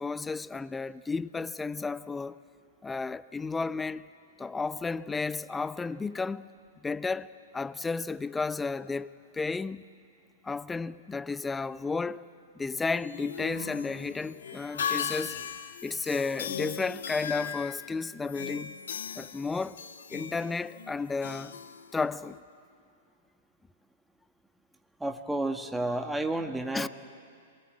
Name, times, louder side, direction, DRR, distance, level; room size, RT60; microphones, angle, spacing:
voice 1, 0.0-2.4 2.8-4.1 4.4-6.5 6.8-9.8 10.4-12.3 12.6-15.4 15.8-18.7 19.2-19.8 20.1-21.6 21.9-22.4 26.7-26.9, left 4 dB, 10° left, 0.6 m, -33 dB
sound 1, 12.8-22.4, left 8 dB, 75° left, 1.1 m, -38 dB
voice 2, 25.0-26.9, right 2 dB, 5° right, 1.5 m, -31 dB
27.5 x 22.0 x 8.9 m
hypercardioid pair, 110°, 0 cm